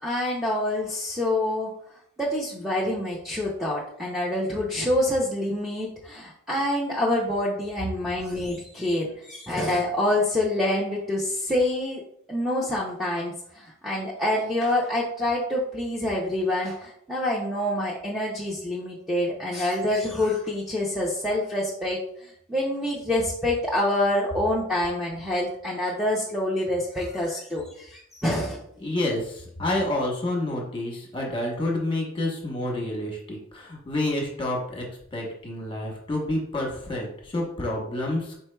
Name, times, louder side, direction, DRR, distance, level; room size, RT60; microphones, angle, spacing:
voice 1, 0.0-1.7 2.2-12.0 12.3-28.6, left 1 dB, ahead, -6 dB, 0.5 m, -26 dB
voice 2, 28.8-34.8 35.1-38.3, left 1 dB, 25° left, -1 dB, 1.1 m, -29 dB
4.4 x 4.4 x 2.2 m, 0.68 s
head